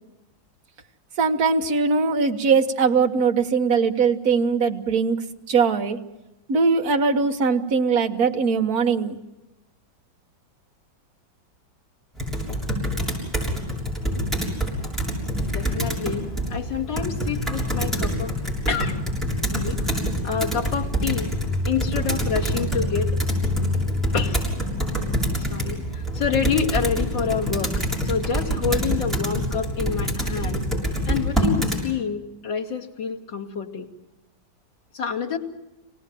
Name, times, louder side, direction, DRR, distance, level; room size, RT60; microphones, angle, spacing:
voice 1, 1.2-5.2 5.5-6.0 6.5-9.2, right 5 dB, 55° right, 4 dB, 1.8 m, -21 dB
Computer keyboard, 12.2-31.8, equal, ahead, 6.8 m, -26 dB
voice 2, 15.5-18.3 18.7-19.0 19.5-20.0 20.2-21.3 21.6-23.1 24.1-24.4 25.4-27.7 28.0-30.6 31.1-33.9 34.9-35.4, left 6 dB, 90° left, -3 dB, 3.2 m, -28 dB
27.5 x 18.5 x 7.6 m, 0.98 s
omnidirectional pair, 2.0 m